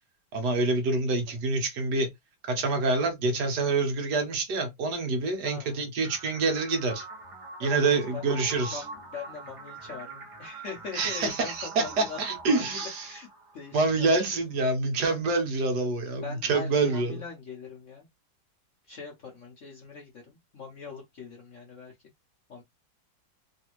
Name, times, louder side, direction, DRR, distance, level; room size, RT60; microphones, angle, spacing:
voice 1, 0.3-2.1 2.5-7.0 7.6-8.8 10.9-13.1 13.7-17.2, right 3 dB, 65° right, 1.3 m, -26 dB
voice 2, 5.4-5.9 7.6-7.8 8.1-8.3 8.7-11.5 11.8-12.6 13.0-13.3 13.5-14.1 16.2-18.1 18.9-21.9 22.5-22.6, left 5 dB, 60° left, 0.8 m, -41 dB
sound 1, 6.0-14.0, right 3 dB, 40° right, 0.5 m, -44 dB
3.3 x 2.5 x 2.9 m
omnidirectional pair, 2.0 m